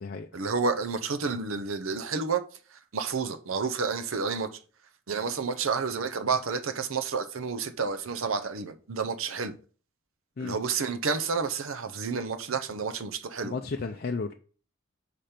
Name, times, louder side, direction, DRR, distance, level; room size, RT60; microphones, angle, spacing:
voice 1, 0.3-2.4 2.7-4.5 5.1-9.5 10.4-13.5, right 5 dB, 80° right, 0.7 m, -30 dB
voice 2, 13.4-14.3, left 4 dB, 50° left, 0.5 m, -33 dB
5.1 x 4.4 x 5.1 m
head